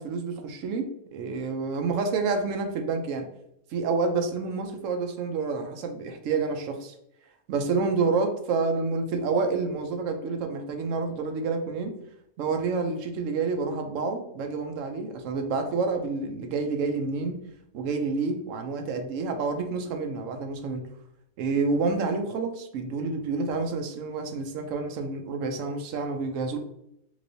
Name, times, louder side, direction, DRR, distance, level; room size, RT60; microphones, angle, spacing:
voice 1, 0.0-3.3 3.7-6.9 7.5-11.9 12.4-17.4 17.7-20.9 21.4-26.6, right 4 dB, 70° right, 5 dB, 0.9 m, -28 dB
3.1 x 2.9 x 2.6 m, 0.78 s
omnidirectional pair, 1.4 m